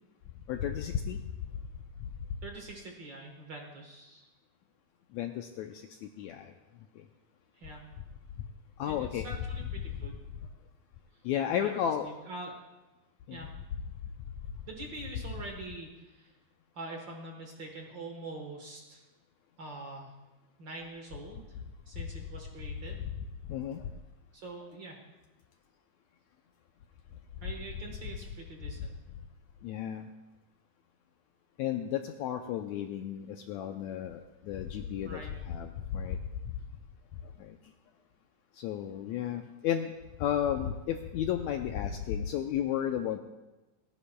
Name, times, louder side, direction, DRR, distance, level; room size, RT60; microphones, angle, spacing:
voice 1, 0.5-1.2 5.1-5.7 6.2-6.4 8.8-9.3 11.2-12.1 13.3-13.4 23.5-23.8 29.6-30.1 31.6-34.2 34.5-35.2 35.5-36.2 38.6-39.9 40.2-43.2, left 10 dB, 90° left, 6 dB, 1.6 m, -32 dB
voice 2, 2.4-4.3 7.5-7.9 8.8-10.2 11.6-11.7 12.0-12.6 13.3-13.5 14.7-16.3 16.7-19.0 19.6-20.1 20.6-21.6 21.9-23.0 24.3-25.0 27.4-28.9 35.0-35.3, right 2 dB, 55° right, 2 dB, 1.3 m, -44 dB
29.5 x 10.0 x 2.2 m, 1.1 s
omnidirectional pair, 3.8 m